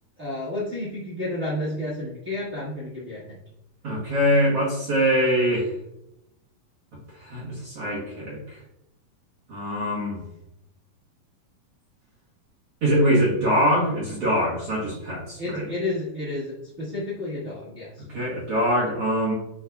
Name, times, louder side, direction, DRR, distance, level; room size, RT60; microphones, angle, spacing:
voice 1, 0.2-3.4 15.4-18.0, left 1 dB, 90° right, -9 dB, 0.7 m, -31 dB
voice 2, 3.8-5.7 7.2-8.4 9.5-10.2 12.8-15.7 18.1-19.3, equal, 55° right, -6 dB, 1.8 m, -23 dB
9.8 x 4.1 x 2.3 m, 0.85 s
omnidirectional pair, 4.3 m